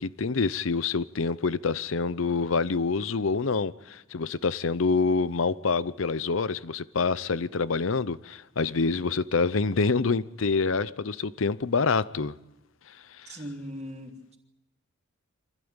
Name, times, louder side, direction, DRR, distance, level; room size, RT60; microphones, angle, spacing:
voice 1, 0.0-12.3 13.2-13.4, left 4 dB, 75° left, 0.7 m, -26 dB
voice 2, 13.2-14.4, equal, 35° right, 3.3 m, -39 dB
25.5 x 15.5 x 8.9 m
head